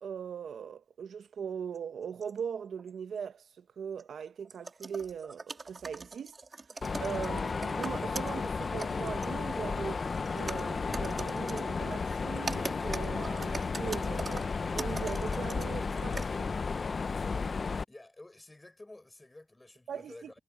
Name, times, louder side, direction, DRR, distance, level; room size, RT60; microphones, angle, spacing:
voice 1, 0.0-6.4 7.0-10.0 10.3-16.6 19.9-20.4, right 7 dB, 75° right, 1.1 m, -40 dB
sound 1, 1.7-1.8 2.2-2.4 2.8-2.9 4.0-8.4 8.7-9.6 10.1-11.6 12.3-15.7 16.0-16.3, right 3 dB, 40° right, 3.2 m, -42 dB
Mechanisms, 6.8-17.8, left 4 dB, 45° left, 0.5 m, -33 dB
voice 2, 17.9-20.4, left 2 dB, 20° left, 6.3 m, -51 dB
cardioid pair, 70°, 0 cm